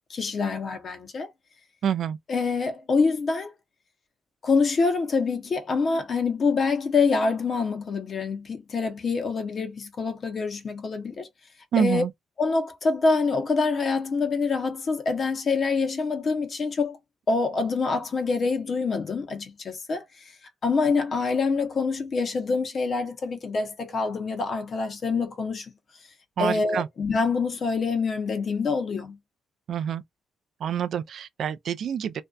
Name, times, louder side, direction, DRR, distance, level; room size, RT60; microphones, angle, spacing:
voice 1, 0.1-1.3 2.3-3.5 4.4-11.3 11.8-12.0 12.4-17.0 17.3-20.3 20.6-25.7 26.4-29.2, left 4 dB, 45° left, 0.6 m, -26 dB
voice 2, 1.8-2.2 11.7-12.1 26.4-26.9 29.7-30.0 30.6-32.2, right 8 dB, 65° right, 0.3 m, -27 dB
2.5 x 2.2 x 2.2 m
cardioid pair, 90°, 0 cm